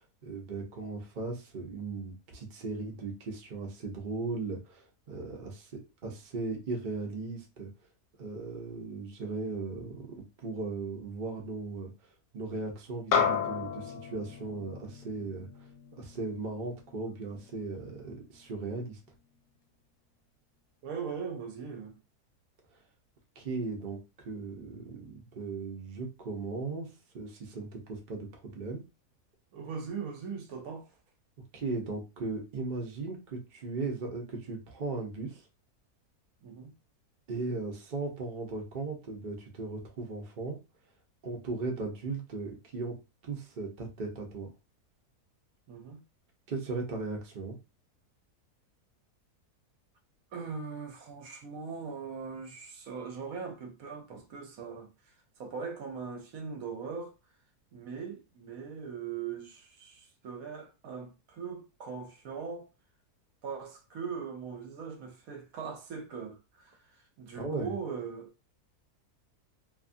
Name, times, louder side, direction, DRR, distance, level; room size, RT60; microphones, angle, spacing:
voice 1, 0.2-7.7 8.2-11.9 12.3-15.5 15.9-19.0 23.4-28.8 31.5-35.4 37.3-40.6 41.2-43.0 43.2-44.5 46.5-47.6 67.3-67.7, right 3 dB, 45° right, 0.6 m, -37 dB
sound 1, 13.1-17.7, left 7 dB, 80° left, 1.1 m, -33 dB
voice 2, 20.8-22.0 29.5-30.9 36.4-36.7 45.7-46.0 50.3-54.9 55.4-57.1 57.7-62.6 63.4-66.8 67.2-68.3, right 6 dB, 70° right, 1.0 m, -40 dB
2.7 x 2.3 x 2.5 m
omnidirectional pair, 1.6 m